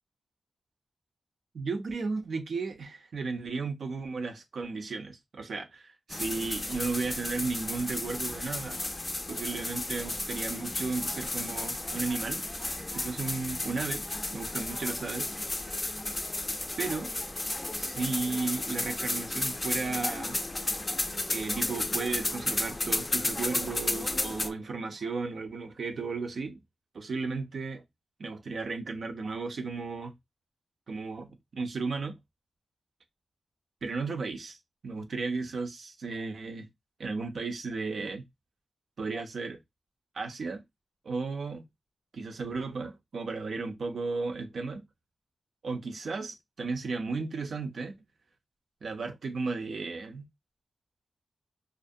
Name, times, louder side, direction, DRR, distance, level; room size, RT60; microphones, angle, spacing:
voice 1, 1.5-8.8 9.3-12.4 12.9-14.0 14.3-15.3 16.8-17.1 17.8-20.8 21.3-26.6 26.9-27.8 28.2-30.1 30.9-32.2 33.8-34.6 34.8-36.7 37.0-38.2 39.0-39.6 40.1-40.6 41.0-41.7 42.1-44.8 45.6-48.0 48.8-50.3, right 4 dB, 75° right, 0.5 m, -34 dB
sound 1, 6.1-24.5, left 2 dB, 30° left, 0.4 m, -33 dB
2.5 x 2.1 x 2.6 m
cardioid pair, 65°, 0 cm